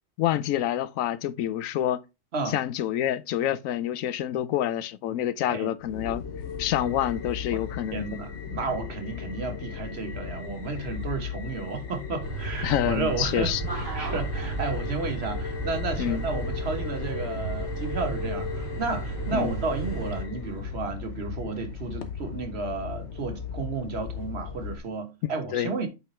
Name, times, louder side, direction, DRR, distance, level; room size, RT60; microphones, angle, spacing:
voice 1, 0.2-2.0 2.5-6.2 6.6-8.0 12.6-13.6 16.0-16.2 19.3-19.5 25.5-25.7, left 11 dB, 85° left, 1.0 m, -27 dB
sound 1, 5.8-24.8, left 7 dB, 60° left, 1.2 m, -36 dB
voice 2, 7.9-25.9, right 4 dB, 55° right, 1.5 m, -32 dB
sound 2, 12.2-20.2, right 4 dB, 80° right, 3.2 m, -33 dB
8.2 x 3.7 x 4.3 m
omnidirectional pair, 1.4 m